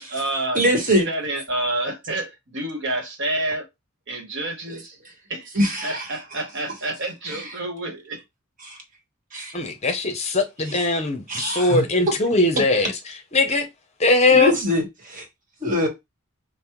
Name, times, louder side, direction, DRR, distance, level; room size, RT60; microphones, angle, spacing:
voice 1, 0.0-3.7 4.1-5.0 5.3-5.5 5.8-8.2, right 1 dB, 60° right, 1.1 m, -28 dB
voice 2, 0.5-1.1 4.7-4.8 5.5-6.2 7.3-7.4 8.6-8.8 9.3-9.6 11.3-11.8 14.3-15.2 15.6-15.9, equal, 40° right, 1.3 m, -23 dB
voice 3, 9.5-13.7 14.0-14.5, left 2 dB, 30° left, 0.7 m, -20 dB
5.3 x 2.1 x 3.0 m
head